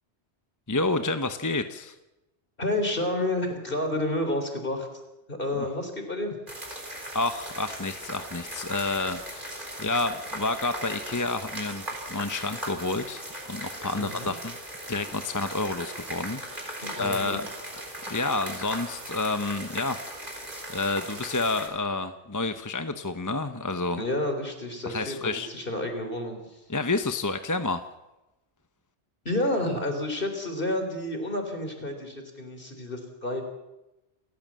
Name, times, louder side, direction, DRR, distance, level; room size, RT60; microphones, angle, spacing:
voice 1, 0.7-1.9 7.1-11.8 12.1-14.6 14.9-17.5 18.1-20.0 20.7-24.0 24.9-25.5 26.7-27.8, left 3 dB, 20° left, 9 dB, 0.9 m, -29 dB
voice 2, 2.6-4.9 5.3-6.4 14.0-14.3 16.8-17.4 24.0-26.6 29.3-33.4, left 1 dB, 50° left, 5 dB, 3.9 m, -30 dB
sound 1, 6.5-21.7, right 1 dB, 45° right, 4.2 m, -38 dB
28.0 x 14.5 x 7.5 m, 0.98 s
omnidirectional pair, 1.1 m